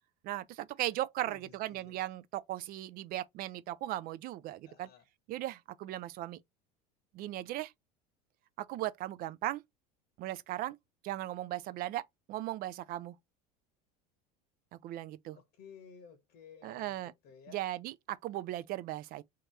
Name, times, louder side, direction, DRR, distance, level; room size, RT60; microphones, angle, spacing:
voice 1, 0.2-4.9 5.3-6.4 7.1-7.7 8.6-9.6 10.2-10.8 11.0-13.2 14.7-15.4 16.6-17.1 17.5-19.2, right 15 dB, 45° right, 0.4 m, -37 dB
voice 2, 1.3-2.0 4.6-5.0 15.3-17.6, left 6 dB, 55° left, 0.9 m, -55 dB
2.8 x 2.3 x 3.3 m
hypercardioid pair, 80°, 21 cm